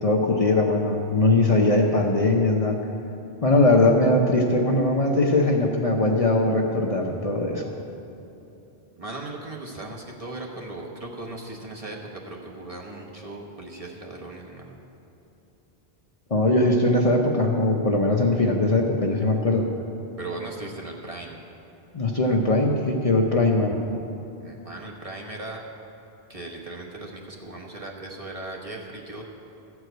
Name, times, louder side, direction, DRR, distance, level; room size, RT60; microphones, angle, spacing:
voice 1, 0.0-2.8 3.4-7.7 16.3-19.7 21.9-23.8, left 2 dB, 40° left, 0 dB, 0.8 m, -21 dB
voice 2, 9.0-14.8 20.2-21.4 24.4-25.6 26.3-29.2, right 2 dB, 35° right, -1 dB, 1.2 m, -37 dB
14.0 x 4.8 x 7.9 m, 2.8 s
omnidirectional pair, 1.0 m